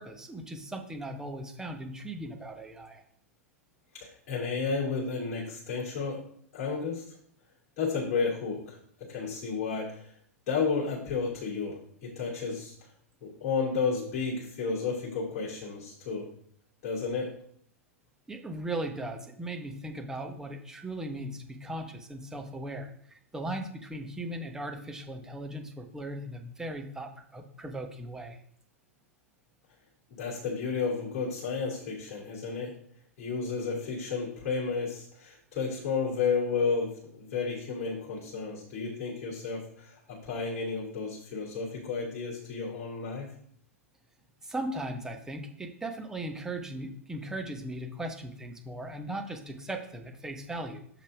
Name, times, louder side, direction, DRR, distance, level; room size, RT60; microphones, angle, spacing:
voice 1, 0.0-3.0 18.3-28.4 44.4-51.0, right 1 dB, 5° right, 4 dB, 1.0 m, -38 dB
voice 2, 3.9-6.2 6.5-7.0 7.8-8.8 9.1-10.1 10.5-12.9 13.2-16.3 16.8-17.3 30.1-32.7 33.2-43.3, left 5 dB, 35° left, -6 dB, 2.6 m, -32 dB
6.9 x 5.3 x 4.9 m, 0.64 s
figure-of-eight pair, 100°, 8 cm